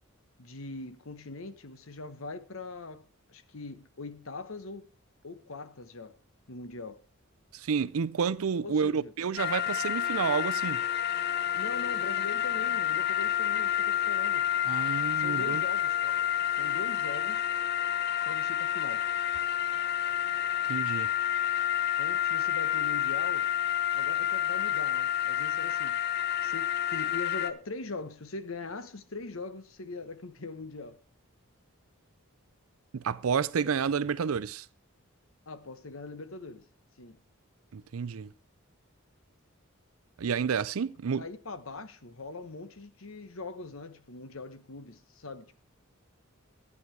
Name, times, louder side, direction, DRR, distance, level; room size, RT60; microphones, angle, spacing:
voice 1, 0.4-4.9 5.2-6.2 6.5-7.0 8.6-9.1 11.5-14.5 15.2-16.2 16.5-17.5 18.3-19.0 22.0-23.5 23.9-26.0 26.4-31.0 35.5-36.6 37.0-37.2 41.2-45.5, left 3 dB, 70° left, 1.1 m, -42 dB
voice 2, 7.5-10.8 14.7-15.6 20.7-21.1 21.6-21.7 32.9-34.7 37.7-38.3 40.2-41.2, right 6 dB, 80° right, 0.5 m, -30 dB
sound 1, 9.4-27.5, left 11 dB, 45° left, 0.7 m, -29 dB
12.0 x 9.6 x 4.6 m
head